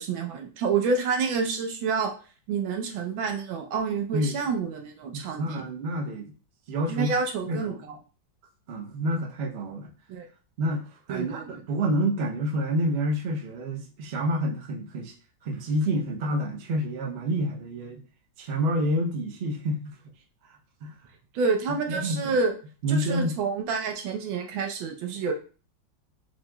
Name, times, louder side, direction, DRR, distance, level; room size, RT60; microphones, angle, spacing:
voice 1, 0.0-2.1 2.5-5.6 6.9-8.0 10.1-10.3 11.1-11.6 21.3-22.6 22.9-25.3, right 5 dB, 85° right, 3 dB, 1.5 m, -28 dB
voice 2, 5.1-6.3 6.7-7.1 7.5-7.7 8.7-9.9 10.6-11.4 11.7-15.1 15.4-18.1 18.4-19.9 20.8-20.9 21.9-22.4 22.8-23.4, equal, 60° right, 0 dB, 0.6 m, -28 dB
5.1 x 2.9 x 2.2 m, 0.37 s
omnidirectional pair, 2.1 m